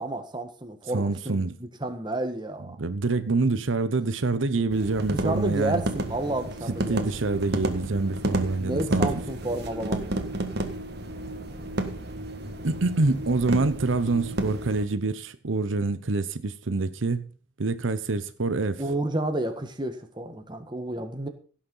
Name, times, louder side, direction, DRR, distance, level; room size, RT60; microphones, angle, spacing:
voice 1, 0.0-2.8 5.1-7.1 8.6-10.4 18.8-21.3, right 2 dB, 25° right, 1.6 m, -31 dB
voice 2, 0.9-1.6 2.8-5.8 6.9-9.1 12.6-17.3 17.6-18.8, right 3 dB, 85° right, 0.8 m, -26 dB
sound 1, 4.7-14.9, right 1 dB, 55° right, 1.6 m, -31 dB
17.0 x 6.6 x 5.5 m
head